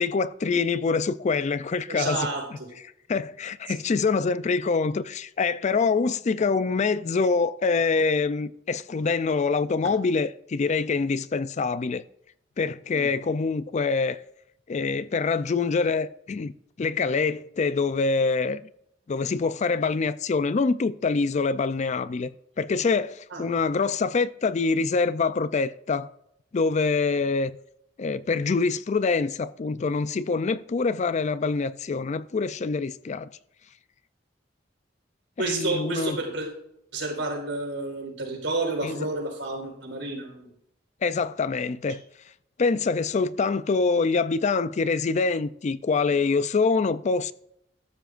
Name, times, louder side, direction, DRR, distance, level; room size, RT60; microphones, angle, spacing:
voice 1, 0.0-2.3 3.1-12.0 12.6-14.2 14.7-16.5 16.8-18.6 19.1-22.3 22.6-26.1 26.5-27.5 28.0-33.3 35.4-36.2 38.8-39.0 41.0-42.0 42.6-47.3, left 4 dB, 40° left, 0.4 m, -25 dB
voice 2, 1.9-2.4 12.9-13.1 23.3-23.4 35.4-36.5 36.9-40.5, right 2 dB, 75° right, 4.7 m, -30 dB
14.0 x 12.5 x 2.5 m
head